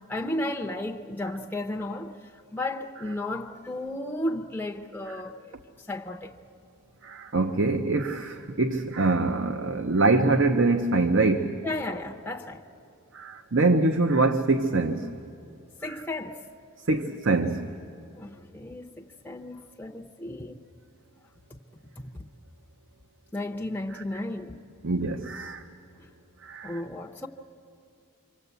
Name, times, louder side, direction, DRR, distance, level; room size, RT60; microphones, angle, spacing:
voice 1, 0.1-5.6 5.9-6.3 11.6-12.6 15.8-16.4 18.2-20.6 21.5-21.6 22.0-22.2 23.3-24.6 26.0-26.1 26.6-27.3, left 1 dB, 10° left, 0.7 m, -34 dB
voice 2, 7.0-11.6 13.1-15.1 15.9-16.0 16.9-17.7 23.9-24.0 24.8-25.6 26.4-26.8, right 3 dB, 55° right, 0.9 m, -24 dB
26.0 x 25.5 x 8.2 m
head